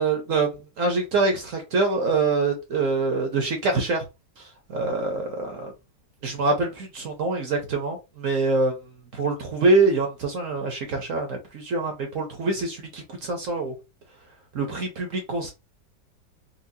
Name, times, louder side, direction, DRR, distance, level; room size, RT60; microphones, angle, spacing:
voice 1, 0.0-4.0 4.7-5.7 6.2-8.8 9.1-13.7 14.5-15.5, right 3 dB, 55° right, 1.0 m, -25 dB
4.5 x 2.2 x 2.7 m
omnidirectional pair, 1.9 m